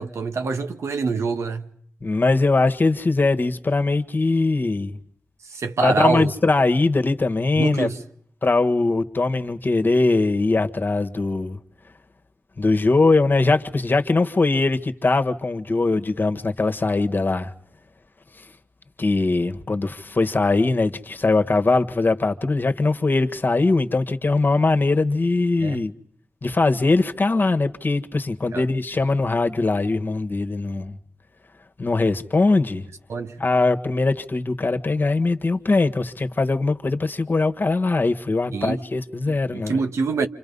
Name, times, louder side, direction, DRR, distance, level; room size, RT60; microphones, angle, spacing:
voice 1, 0.0-1.7 5.5-6.3 7.6-8.0 25.6-25.8 28.5-28.6 33.1-33.4 38.5-38.8 39.3-40.3, right 4 dB, 85° right, 1.5 m, -25 dB
voice 2, 2.0-5.0 5.8-7.9 8.4-11.6 12.6-17.5 18.4-18.5 19.0-25.9 26.4-31.0 31.8-32.8 33.4-39.8, left 3 dB, 45° left, 1.6 m, -21 dB
28.5 x 27.0 x 5.5 m
cardioid pair, 60°, 5 cm